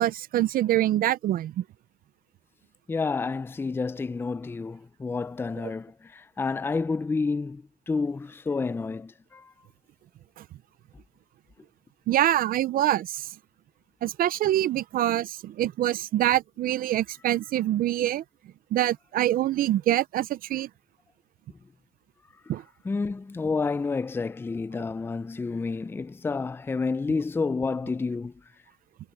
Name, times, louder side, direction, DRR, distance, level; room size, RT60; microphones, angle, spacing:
voice 1, 0.0-1.6 5.6-5.7 12.1-13.3 14.0-18.2 18.7-20.7 22.5-22.6, right 13 dB, 60° right, 0.6 m, -25 dB
voice 2, 2.9-9.5 22.8-28.3, left 4 dB, 15° left, 0.4 m, -29 dB
cardioid pair, 110°, 17 cm